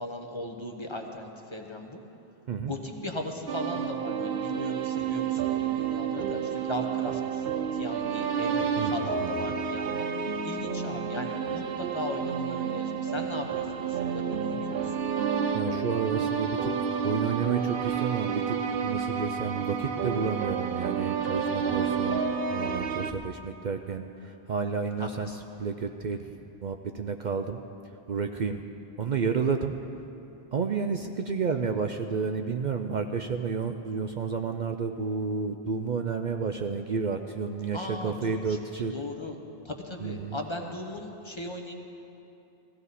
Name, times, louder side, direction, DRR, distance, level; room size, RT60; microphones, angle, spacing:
voice 1, 0.0-2.0 2.7-7.4 7.7-10.1 10.4-14.9 21.8-22.1 25.0-25.4 37.7-39.3 39.6-41.7, left 1 dB, 30° left, 2 dB, 1.1 m, -37 dB
sound 1, 3.5-23.1, right 7 dB, 70° right, 0.9 m, -30 dB
voice 2, 9.2-9.5 15.5-18.6 18.8-27.6 28.1-28.6 29.0-29.7 30.5-38.9 40.0-40.4, right 5 dB, 55° right, 6 dB, 0.6 m, -31 dB
18.0 x 15.0 x 4.1 m, 2.7 s
omnidirectional pair, 1.1 m